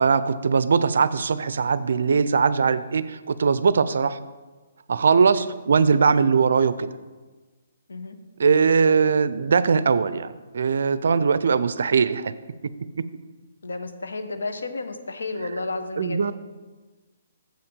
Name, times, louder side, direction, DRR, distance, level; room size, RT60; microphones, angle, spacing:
voice 1, 0.0-4.2 4.9-6.9 8.4-12.3 12.6-12.7 13.0-13.1 16.0-16.3, right 5 dB, 70° right, 15 dB, 0.4 m, -20 dB
voice 2, 13.6-16.3, left 3 dB, 80° left, 8 dB, 0.8 m, -32 dB
7.2 x 5.9 x 5.1 m, 1.3 s
hypercardioid pair, 135°, 0 cm